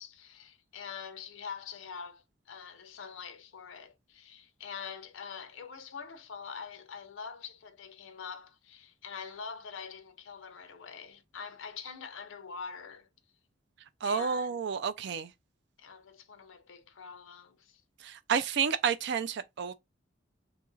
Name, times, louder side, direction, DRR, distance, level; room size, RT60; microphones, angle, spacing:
voice 1, 0.0-13.1 14.0-14.6 15.8-17.8, left 6 dB, 85° left, 0.6 m, -44 dB
voice 2, 14.0-15.3 18.0-19.7, right 6 dB, 65° right, 0.4 m, -30 dB
2.9 x 2.5 x 3.8 m
head